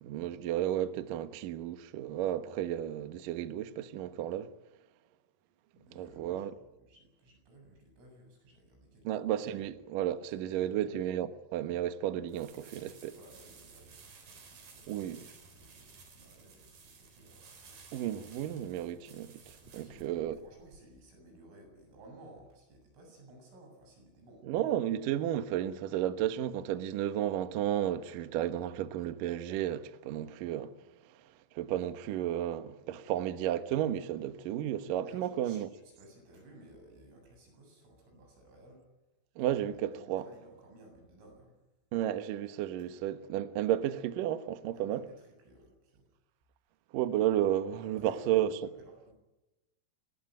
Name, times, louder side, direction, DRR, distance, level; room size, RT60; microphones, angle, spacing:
voice 1, 0.0-4.5 6.0-6.5 9.0-13.2 14.9-15.3 17.9-19.3 19.7-20.4 24.5-30.7 31.5-35.7 39.4-40.3 41.9-45.0 46.9-48.6, right 11 dB, 70° right, 2.0 m, -33 dB
voice 2, 5.7-9.7 10.3-10.9 13.1-17.8 19.6-24.6 35.0-38.8 39.4-41.5 44.7-46.1 47.8-49.1, right 1 dB, 90° right, 10.0 m, -57 dB
sound 1, 12.3-20.8, right 5 dB, 50° right, 5.2 m, -55 dB
25.5 x 20.0 x 9.3 m
omnidirectional pair, 5.6 m